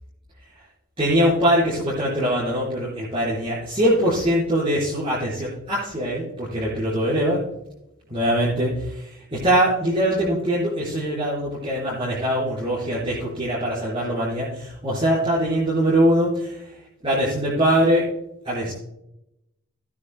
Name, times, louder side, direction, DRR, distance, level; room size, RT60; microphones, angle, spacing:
voice 1, 1.0-7.4 8.1-16.7 17.0-18.0 18.4-18.7, equal, 25° right, -10 dB, 4.8 m, -22 dB
18.5 x 9.6 x 2.2 m, 0.85 s
head